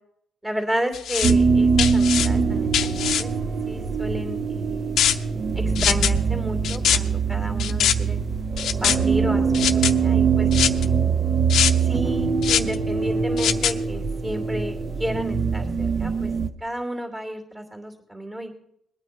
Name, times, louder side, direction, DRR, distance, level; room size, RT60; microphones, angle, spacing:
voice 1, 0.4-3.3 3.7-5.0 5.5-8.2 8.8-10.5 11.8-16.3 16.6-18.5, right 1 dB, 20° right, 4 dB, 2.8 m, -32 dB
sound 1, 0.9-1.3 1.8-2.3 2.7-3.2 5.0-5.1 5.8-6.1 6.6-7.0 7.6-7.9 8.6-9.0 9.5-9.9 10.5-10.8 11.5-11.7 12.4-12.7 13.4-13.7, left 9 dB, 75° left, 0.7 m, -21 dB
sound 2, 1.2-16.5, right 5 dB, 45° right, 0.8 m, -23 dB
20.5 x 9.0 x 4.4 m, 0.73 s
cardioid pair, 90°, 0 cm